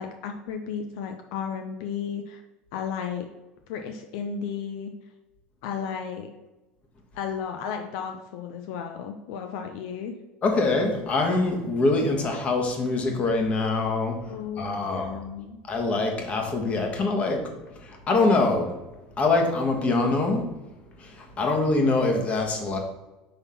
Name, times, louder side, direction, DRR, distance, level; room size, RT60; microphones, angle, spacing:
voice 1, 0.0-2.4 2.7-3.3 3.7-4.9 5.6-6.3 7.1-10.1 14.3-15.6, left 7 dB, 75° left, 5 dB, 0.6 m, -33 dB
voice 2, 10.4-15.1 15.7-17.5 17.8-18.7 19.2-20.4 21.0-22.8, left 3 dB, 35° left, 3 dB, 1.4 m, -24 dB
5.7 x 3.6 x 5.7 m, 1.1 s
supercardioid pair, 120°, 4 cm